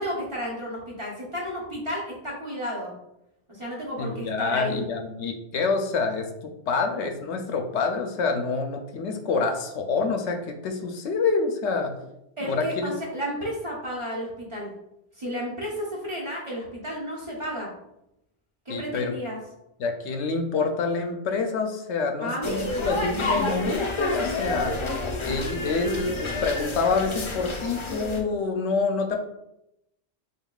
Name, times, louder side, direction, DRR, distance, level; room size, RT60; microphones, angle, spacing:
voice 1, 0.0-2.9 3.5-4.8 12.4-14.7 15.2-17.7 18.7-19.4 22.2-22.8, equal, 30° right, -5 dB, 1.0 m, -32 dB
voice 2, 4.0-11.9 12.4-12.9 18.7-19.2 19.8-24.7 25.2-29.2, left 4 dB, 85° left, 4 dB, 0.9 m, -27 dB
sound 1, 22.4-28.2, left 2 dB, 45° left, 0.4 m, -29 dB
4.0 x 3.6 x 2.3 m, 0.84 s
omnidirectional pair, 1.2 m